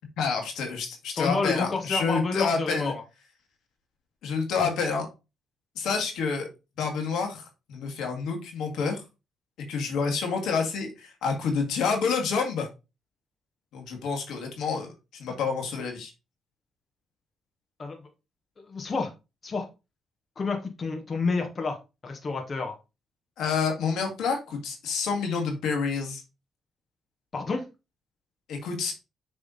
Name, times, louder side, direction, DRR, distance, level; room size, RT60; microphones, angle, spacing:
voice 1, 0.2-2.9 4.2-5.1 5.8-6.5 6.8-9.0 9.7-12.7 13.7-14.9 15.2-16.1 23.4-26.2 28.5-28.9, left 5 dB, 80° left, 3 dB, 1.9 m, -28 dB
voice 2, 1.1-3.0 17.8-18.0 18.7-19.1 19.4-19.7 20.4-21.8 22.0-22.7 27.3-27.6, left 4 dB, 40° left, 3 dB, 1.3 m, -29 dB
6.6 x 3.6 x 4.0 m, 0.27 s
cardioid pair, 90°, 0 cm